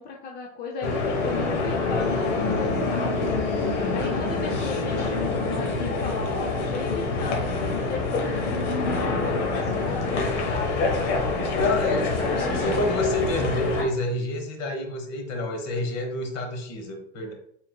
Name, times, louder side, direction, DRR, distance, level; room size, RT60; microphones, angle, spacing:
voice 1, 0.0-3.5 3.9-11.0 11.4-11.9, left 4 dB, 30° left, -1 dB, 0.5 m, -36 dB
sound 1, 0.8-13.8, left 3 dB, 90° left, 1.2 m, -26 dB
voice 2, 11.5-17.3, left 2 dB, 45° left, 3 dB, 1.0 m, -28 dB
4.0 x 3.8 x 2.2 m, 0.69 s
supercardioid pair, 145°, 34 cm